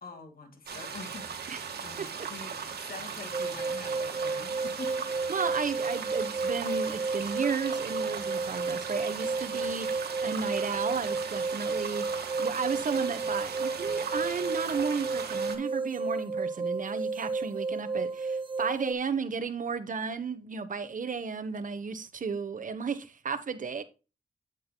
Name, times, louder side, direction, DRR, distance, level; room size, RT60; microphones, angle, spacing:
voice 1, 0.0-5.4, left 4 dB, 65° left, 2.1 m, -46 dB
sound 1, 0.7-15.6, right 6 dB, 90° right, 1.5 m, -38 dB
sound 2, 3.3-18.9, right 4 dB, 30° right, 0.6 m, -32 dB
voice 2, 5.3-9.9 10.2-12.1 12.4-23.8, right 5 dB, 55° right, 1.1 m, -33 dB
8.5 x 8.5 x 2.2 m
cardioid pair, 75°, 16 cm